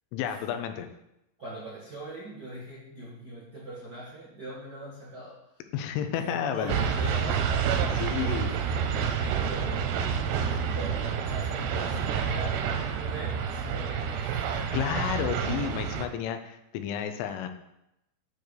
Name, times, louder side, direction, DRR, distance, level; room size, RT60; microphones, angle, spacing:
voice 1, 0.1-0.9 5.7-6.8 8.0-8.5 14.7-17.5, left 9 dB, 85° left, 8 dB, 3.1 m, -31 dB
voice 2, 1.4-5.6 6.1-9.8 10.5-14.7 15.0-15.1 15.4-15.6, right 1 dB, 65° right, -7 dB, 1.0 m, -42 dB
sound 1, 6.7-16.1, right 7 dB, 85° right, 2.4 m, -28 dB
9.3 x 3.1 x 6.5 m, 0.86 s
omnidirectional pair, 5.4 m